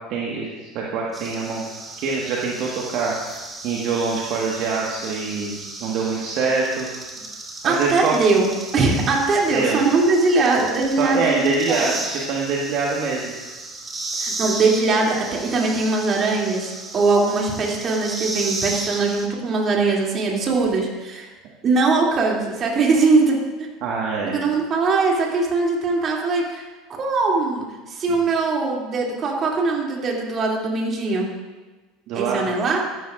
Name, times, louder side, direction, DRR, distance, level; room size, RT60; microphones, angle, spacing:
voice 1, 0.1-1.6 2.0-3.1 3.6-6.9 7.6-8.1 9.5-9.8 11.0-13.3 23.8-24.4 32.1-32.5, right 4 dB, 55° right, -3 dB, 1.5 m, -24 dB
sound 1, 1.1-19.3, right 2 dB, 20° right, 2.0 m, -34 dB
voice 2, 7.6-11.9 14.1-21.3 21.6-23.4 24.2-26.6 26.9-31.3 32.1-32.8, right 3 dB, 40° right, -2 dB, 2.7 m, -21 dB
13.0 x 11.5 x 2.5 m, 1.2 s
hypercardioid pair, 75°, 0 cm